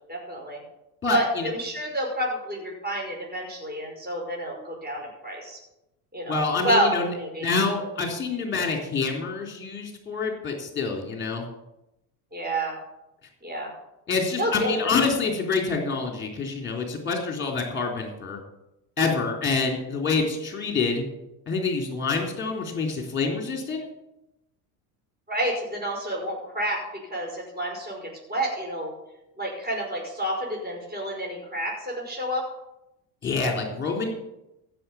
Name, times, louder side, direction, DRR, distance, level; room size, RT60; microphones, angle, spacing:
voice 1, 0.1-0.6 1.1-5.6 6.1-6.4 6.6-6.9 7.2-7.5 12.3-12.7 13.4-13.7 14.4-14.8 25.3-28.9 29.4-32.4, right 1 dB, 20° right, -1 dB, 5.5 m, -29 dB
voice 2, 1.0-1.5 6.3-7.1 7.4-11.4 14.1-18.4 19.0-21.0 21.5-23.9 33.2-34.1, left 4 dB, 25° left, 2 dB, 3.8 m, -27 dB
15.0 x 7.0 x 7.2 m, 0.90 s
hypercardioid pair, 80°, 45 cm